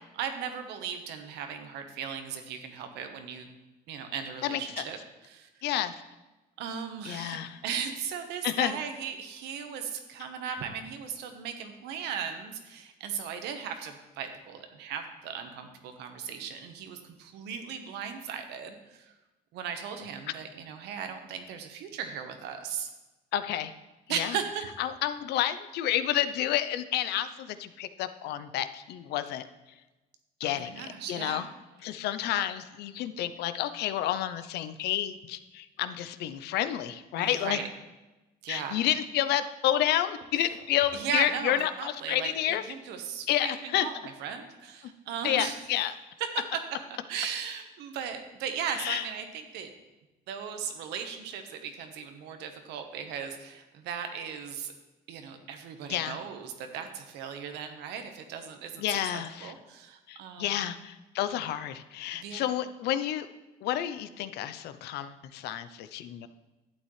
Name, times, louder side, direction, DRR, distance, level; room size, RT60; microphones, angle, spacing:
voice 1, 0.1-3.5 3.9-5.0 5.2-5.5 6.6-19.1 19.5-22.9 24.1-24.7 30.4-31.5 37.2-37.7 38.4-38.8 40.9-43.9 44.2-45.6 46.2-46.3 47.1-49.7 50.3-54.7 55.1-60.6 62.1-62.4, right 7 dB, 85° right, 6 dB, 1.1 m, -37 dB
voice 2, 5.6-6.0 7.0-7.6 8.4-8.8 10.5-10.6 23.3-23.7 24.2-24.4 24.8-29.5 30.4-30.8 31.1-31.5 31.8-37.6 38.5-42.6 43.3-43.8 45.2-45.9 48.7-49.0 55.9-56.2 58.8-59.5 60.1-63.3 63.6-66.3, left 12 dB, 75° left, 12 dB, 0.6 m, -30 dB
11.5 x 8.3 x 3.2 m, 1.1 s
cardioid pair, 110°, 17 cm